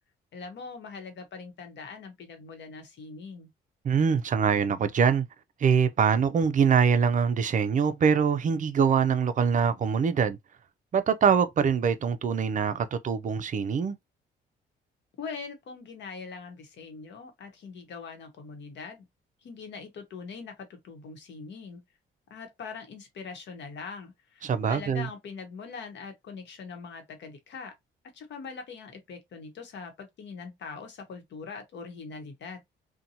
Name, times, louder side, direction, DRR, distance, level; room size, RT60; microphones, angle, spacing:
voice 1, 0.3-3.5 15.2-19.1 19.4-21.8 22.3-27.7 28.1-32.6, left 5 dB, 65° left, 1.0 m, -42 dB
voice 2, 3.8-5.3 5.6-10.4 10.9-14.0 24.4-25.1, right 6 dB, 40° right, 0.4 m, -24 dB
2.7 x 2.2 x 2.7 m
cardioid pair, 90°, 20 cm